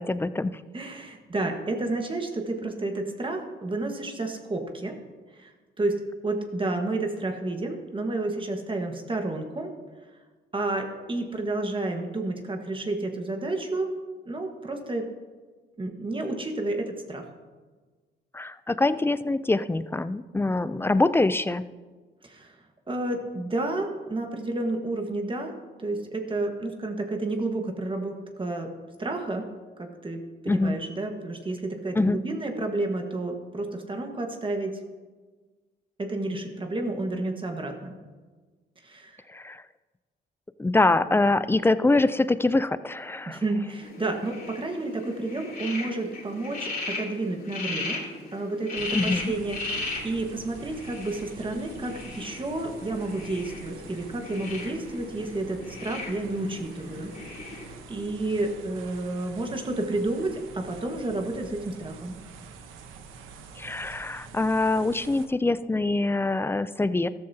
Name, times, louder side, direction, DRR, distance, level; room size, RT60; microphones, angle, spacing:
voice 1, 0.0-0.6 18.3-21.6 30.5-30.8 31.9-32.2 39.3-39.6 40.6-43.4 48.9-49.3 63.6-67.1, left 2 dB, 10° left, 14 dB, 0.4 m, -24 dB
voice 2, 0.7-5.0 5.3-5.5 5.8-9.7 10.5-13.9 14.2-15.1 15.8-17.3 22.2-22.6 22.9-25.5 25.8-28.7 29.0-29.5 29.8-34.7 36.0-37.9 38.8-39.2 43.3-48.0 48.3-57.4 57.9-62.2, right 2 dB, 25° right, 3 dB, 1.5 m, -31 dB
sound 1, 43.8-57.8, left 3 dB, 50° left, 3.0 m, -37 dB
sound 2, 48.8-65.3, right 5 dB, 90° right, 1.1 m, -46 dB
13.5 x 13.0 x 2.8 m, 1.4 s
cardioid pair, 90°, 20 cm